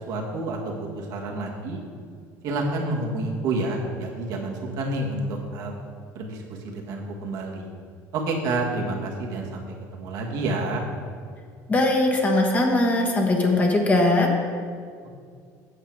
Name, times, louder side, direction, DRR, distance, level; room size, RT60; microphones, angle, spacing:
voice 1, 0.1-1.8 2.4-5.7 6.1-7.7 8.1-9.6 9.9-10.8 15.0-15.1, right 2 dB, 65° right, -1 dB, 1.6 m, -29 dB
voice 2, 11.7-14.3, left 2 dB, 20° left, 1 dB, 1.2 m, -20 dB
8.3 x 6.8 x 4.6 m, 2.1 s
cardioid pair, 120°, 7 cm